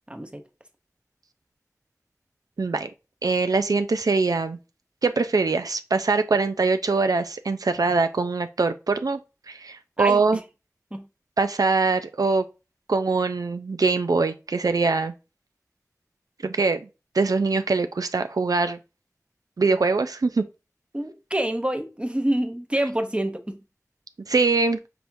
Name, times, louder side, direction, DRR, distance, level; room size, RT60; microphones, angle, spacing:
voice 1, 0.1-0.4 10.0-10.2 10.9-11.0 20.9-23.6, right 1 dB, 20° right, 0.8 m, -27 dB
voice 2, 2.6-2.9 3.2-4.6 5.0-9.2 9.5-10.4 11.4-12.4 12.9-15.1 16.4-16.9 17.1-18.8 19.6-20.4 24.3-24.8, right 4 dB, 85° right, 0.4 m, -23 dB
5.8 x 3.4 x 2.6 m
wide cardioid pair, 40°, 6 cm